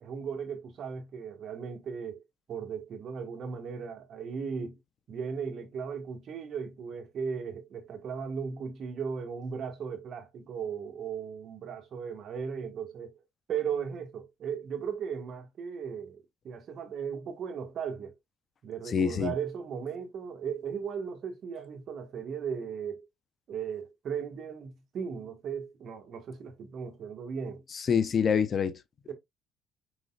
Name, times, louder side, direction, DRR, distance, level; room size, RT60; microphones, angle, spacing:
voice 1, 0.0-2.2 2.5-4.8 5.1-13.1 13.5-18.1 18.6-23.1 23.5-27.6 29.1-29.2, right 6 dB, 60° right, 1.3 m, -37 dB
voice 2, 18.9-19.3 27.7-28.8, left 7 dB, 45° left, 0.7 m, -26 dB
4.9 x 3.9 x 2.3 m
cardioid pair, 85°, 0 cm